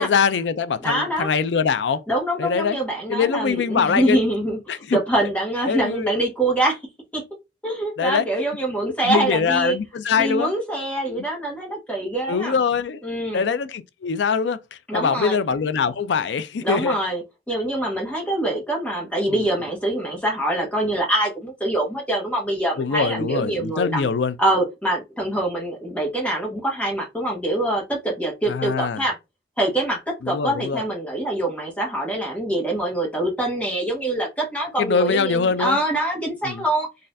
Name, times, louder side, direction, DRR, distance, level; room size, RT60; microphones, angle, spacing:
voice 1, 0.0-2.0 2.4-2.8 3.1-4.2 4.7-5.0 5.7-6.1 8.0-8.2 9.0-10.5 11.1-11.2 12.3-13.0 13.3-17.0 19.3-19.5 22.8-24.3 28.5-29.0 30.2-30.8 34.8-35.8 36.4-36.6, left 5 dB, 75° left, 0.4 m, -23 dB
voice 2, 0.8-1.3 2.1-6.8 7.1-7.2 7.6-9.8 10.2-12.5 13.0-13.4 14.9-15.4 16.6-24.1 24.4-29.2 29.6-36.9, right 1 dB, 10° left, 1.1 m, -24 dB
4.1 x 2.4 x 2.6 m
head